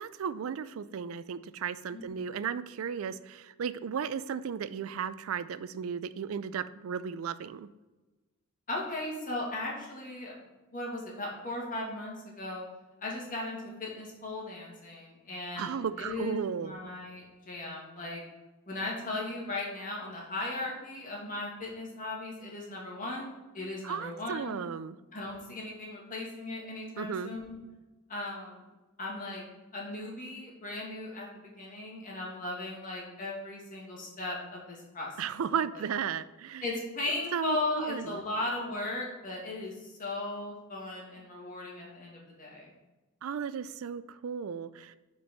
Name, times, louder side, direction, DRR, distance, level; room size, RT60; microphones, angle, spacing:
voice 1, 0.0-7.7 15.6-16.9 23.8-25.0 27.0-27.3 35.2-36.6 37.3-38.2 43.2-45.0, right 7 dB, 85° right, 15 dB, 0.4 m, -35 dB
voice 2, 8.7-10.4 10.7-12.6 13.0-18.2 18.7-24.6 25.1-27.6 28.1-28.6 29.0-29.4 29.7-31.3 31.6-35.2 36.6-42.7, left 2 dB, 40° left, -3 dB, 2.0 m, -37 dB
6.1 x 4.5 x 5.8 m, 1.1 s
head